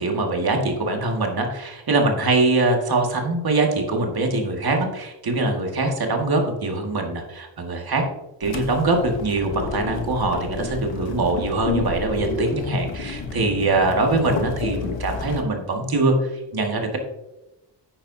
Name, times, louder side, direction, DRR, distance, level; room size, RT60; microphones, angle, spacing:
voice 1, 0.0-8.0 8.4-17.0, right 2 dB, 55° right, 2 dB, 2.0 m, -23 dB
sound 1, 8.4-15.4, left 3 dB, 85° left, 1.3 m, -30 dB
11.0 x 8.8 x 2.8 m, 0.98 s
cardioid pair, 90°, 43 cm